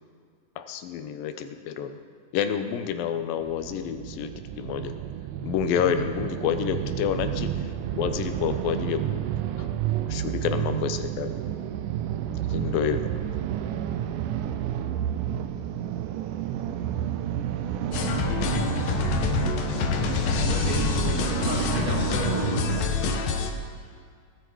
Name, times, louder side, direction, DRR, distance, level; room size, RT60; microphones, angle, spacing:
voice 1, 0.6-2.0 2.3-4.9 5.4-9.3 9.6-9.7 10.1-11.4 12.5-13.2, left 8 dB, 85° left, 8 dB, 2.5 m, -29 dB
sound 1, 3.4-22.9, right 10 dB, 80° right, 2.0 m, -30 dB
sound 2, 17.9-23.5, left 5 dB, 65° left, 2.0 m, -26 dB
voice 2, 20.4-22.8, equal, 50° right, -5 dB, 3.8 m, -33 dB
19.5 x 9.6 x 4.7 m, 2.1 s
omnidirectional pair, 4.0 m